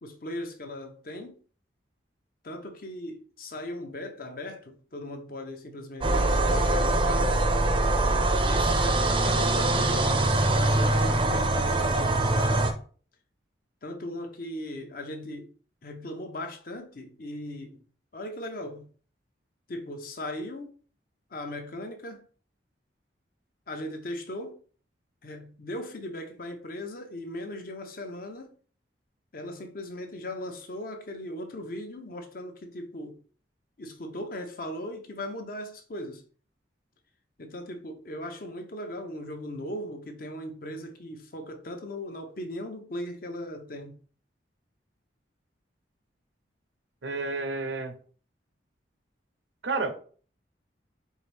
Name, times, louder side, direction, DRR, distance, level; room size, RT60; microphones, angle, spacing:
voice 1, 0.0-1.4 2.4-7.5 8.4-12.7 13.8-15.5 15.8-17.8 18.1-18.9 19.7-20.8 21.3-22.2 23.7-24.6 25.2-28.6 29.3-33.2 33.8-36.2 37.4-44.0, left 1 dB, 50° left, 0.7 m, -38 dB
sound 1, 6.0-12.7, right 2 dB, 30° right, 0.5 m, -23 dB
voice 2, 47.0-47.9 49.6-50.0, right 3 dB, 85° right, 0.7 m, -30 dB
4.5 x 2.6 x 3.3 m
head